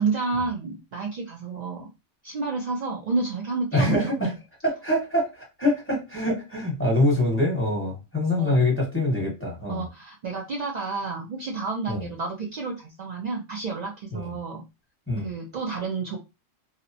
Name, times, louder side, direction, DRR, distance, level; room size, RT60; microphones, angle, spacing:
voice 1, 0.0-1.9 2.2-4.4 8.4-8.6 9.7-14.6 15.2-16.2, right 4 dB, 70° right, -1 dB, 0.4 m, -30 dB
voice 2, 3.7-4.3 4.6-9.8 11.9-12.0 14.1-14.3 15.1-15.3, left 1 dB, 10° left, -3 dB, 1.0 m, -24 dB
2.7 x 2.0 x 2.5 m, 0.27 s
omnidirectional pair, 1.3 m